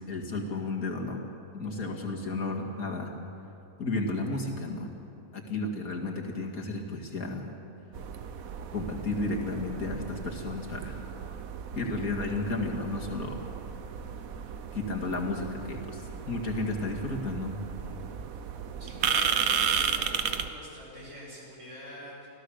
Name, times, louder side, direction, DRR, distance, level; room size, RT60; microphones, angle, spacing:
voice 1, 0.1-1.2 1.5-3.1 3.8-4.9 5.3-7.5 8.7-11.0 11.7-13.4 14.7-17.6, left 2 dB, 70° left, 0 dB, 2.6 m, -33 dB
sound 1, 7.9-20.5, right 7 dB, 70° right, 1.3 m, -34 dB
voice 2, 18.8-22.3, equal, 55° right, -4 dB, 6.8 m, -45 dB
26.0 x 16.5 x 6.5 m, 2.8 s
omnidirectional pair, 1.6 m